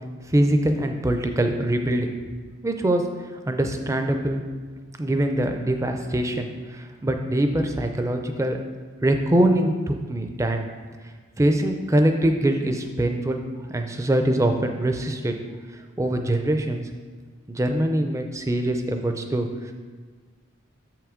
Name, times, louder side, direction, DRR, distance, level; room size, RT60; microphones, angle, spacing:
voice 1, 0.3-2.2 2.6-3.0 3.5-4.4 5.0-8.6 9.0-10.7 11.4-13.4 13.7-15.3 16.0-16.9 17.5-19.7, right 1 dB, 15° right, 5 dB, 0.4 m, -23 dB
7.3 x 5.9 x 3.7 m, 1.5 s
head